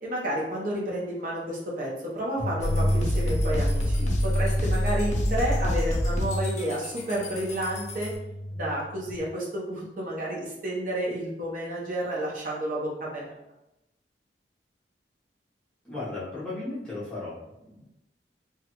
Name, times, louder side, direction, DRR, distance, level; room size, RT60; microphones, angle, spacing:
voice 1, 0.0-8.1 8.5-13.3, right 1 dB, 50° right, -4 dB, 0.8 m, -31 dB
sound 1, 2.4-9.2, equal, 20° right, 1.2 m, -31 dB
sound 2, 2.6-8.2, left 1 dB, 45° left, 0.6 m, -28 dB
voice 2, 15.8-17.9, left 2 dB, 5° left, -10 dB, 0.9 m, -36 dB
3.0 x 2.4 x 2.9 m, 0.89 s
head